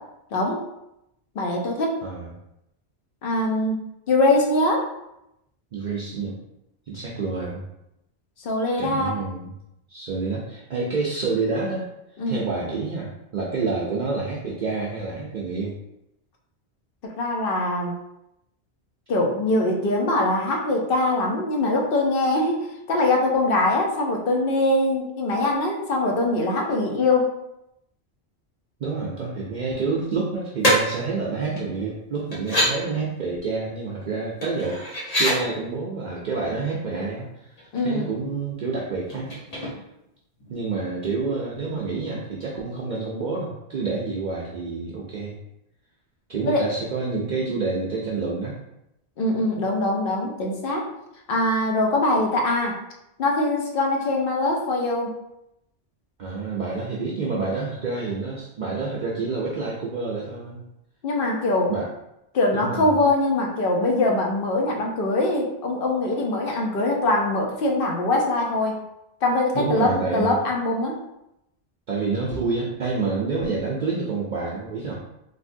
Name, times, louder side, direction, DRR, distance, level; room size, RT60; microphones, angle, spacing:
voice 1, 0.3-0.6 1.4-2.0 3.2-4.9 8.4-9.2 12.2-12.5 17.0-17.9 19.1-27.3 37.7-38.1 46.4-46.7 49.2-50.9 51.3-52.8 53.2-55.1 61.0-61.7 62.3-68.8 69.2-71.0, left 2 dB, 60° left, 1 dB, 0.7 m, -23 dB
voice 2, 5.7-6.3 6.9-7.6 8.8-9.5 9.9-11.9 12.3-15.7 28.8-34.8 35.2-37.5 37.8-39.3 40.5-45.4 46.3-48.6 56.2-60.6 61.7-61.9 62.5-62.9 69.5-70.4 71.9-75.0, right 4 dB, 55° right, -4 dB, 0.5 m, -28 dB
sound 1, 30.6-30.8 31.6-31.7 32.3-32.7 34.4-35.4 37.1-37.3 37.6-38.1 39.1-40.1 40.4-40.5, equal, 35° left, 1.0 m, -24 dB
3.4 x 2.6 x 2.6 m, 0.84 s
omnidirectional pair, 1.1 m